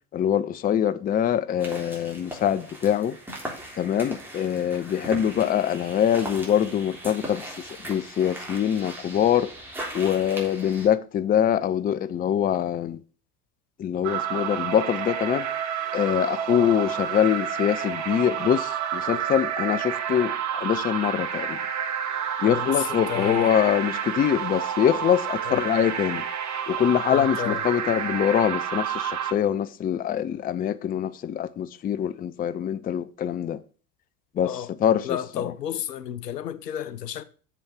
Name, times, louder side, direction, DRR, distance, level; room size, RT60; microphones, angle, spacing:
voice 1, 0.1-3.2 3.8-9.5 9.9-13.0 13.8-15.5 15.9-21.6 22.4-26.2 26.7-33.6 34.4-35.5, left 9 dB, 20° left, 0.5 m, -24 dB
sound 1, 1.6-10.9, right 1 dB, 5° right, 3.5 m, -39 dB
sound 2, 14.0-29.3, right 8 dB, 35° right, 1.5 m, -29 dB
voice 2, 22.5-23.5 25.5-25.6 27.1-27.6 34.4-34.7 35.0-37.2, left 10 dB, 85° left, 0.8 m, -32 dB
7.0 x 5.8 x 6.5 m
hypercardioid pair, 75°, 47 cm